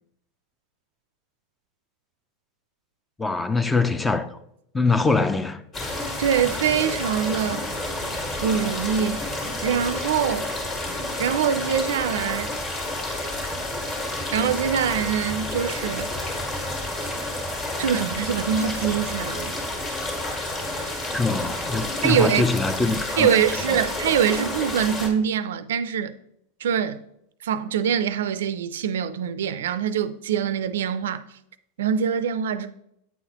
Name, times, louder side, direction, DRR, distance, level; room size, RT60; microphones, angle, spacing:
voice 1, 3.2-4.4 4.7-5.6 21.1-23.4, left 3 dB, 10° left, 0.4 m, -23 dB
sound 1, 5.7-25.1, left 1 dB, 25° left, 1.4 m, -30 dB
voice 2, 6.2-7.7 8.4-9.2 9.6-10.5 11.2-12.5 14.3-16.1 17.8-19.5 22.0-22.4 23.2-26.1 26.6-27.0 27.4-31.2 31.8-32.7, right 8 dB, 85° right, 0.4 m, -24 dB
8.3 x 4.1 x 2.9 m
supercardioid pair, 135°, 0 cm